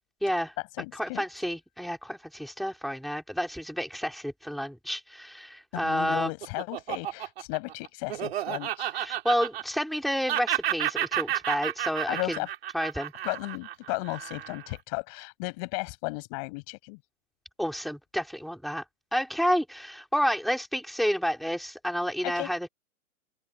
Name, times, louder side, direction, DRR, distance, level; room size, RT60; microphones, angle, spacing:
voice 1, 0.2-0.5 0.9-6.3 8.9-12.4 12.7-13.1 17.6-18.8 19.1-22.7, equal, ahead, 3.8 m, -30 dB
voice 2, 0.7-1.2 5.7-8.9 12.1-12.5 13.2-17.0 22.2-22.5, left 31 dB, 25° left, 5.6 m, -35 dB
Laughter, 5.7-10.0 10.3-14.7, right 12 dB, 45° right, 4.1 m, -31 dB
open air
hypercardioid pair, 170°, 42 cm